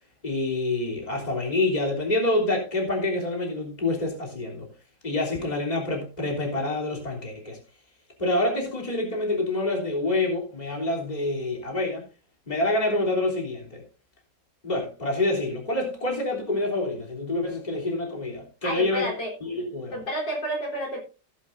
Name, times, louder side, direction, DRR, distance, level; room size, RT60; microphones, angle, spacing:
voice 1, 0.2-4.7 5.0-7.6 8.2-12.0 12.5-13.8 14.6-19.1 19.4-20.0, left 2 dB, 20° left, 3.4 m, -27 dB
voice 2, 18.6-19.3 19.9-21.0, right 1 dB, 75° left, 4.6 m, -30 dB
16.5 x 10.5 x 2.6 m
omnidirectional pair, 2.0 m